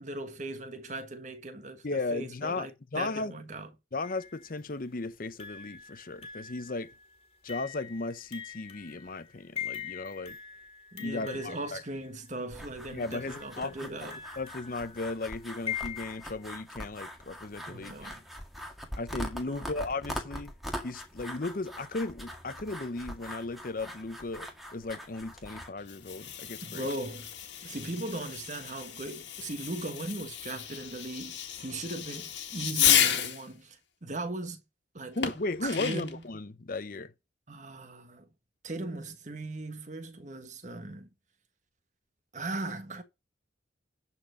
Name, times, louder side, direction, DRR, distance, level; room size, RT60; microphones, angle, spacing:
voice 1, 0.0-3.7 10.9-14.2 17.7-18.2 19.5-19.7 26.6-27.3 27.6-34.6 34.9-36.1 37.5-38.3 38.6-41.1 42.3-43.0, right 2 dB, 40° right, 1.5 m, -38 dB
voice 2, 1.8-3.3 3.9-6.9 7.4-10.4 11.0-11.8 12.9-17.9 19.0-20.5 20.8-26.9 35.2-37.1, left 3 dB, 45° left, 0.7 m, -36 dB
sound 1, 4.0-4.6 5.4-12.3 13.1-16.4, left 8 dB, 30° left, 2.0 m, -43 dB
sound 2, 12.5-25.7, equal, ahead, 1.8 m, -42 dB
Fireworks, 25.8-33.5 35.2-36.2, left 9 dB, 75° left, 1.9 m, -32 dB
11.5 x 4.5 x 6.2 m
head